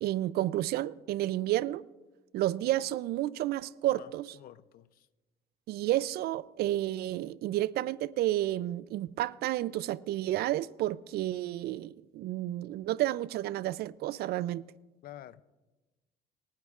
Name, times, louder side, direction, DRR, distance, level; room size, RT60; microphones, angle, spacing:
voice 1, 0.0-1.8 2.3-4.4 5.7-14.6, right 14 dB, 70° right, 0.4 m, -31 dB
voice 2, 4.4-4.9 15.0-15.4, left 12 dB, 60° left, 0.6 m, -48 dB
27.0 x 9.5 x 2.5 m
cardioid pair, 110°, 17 cm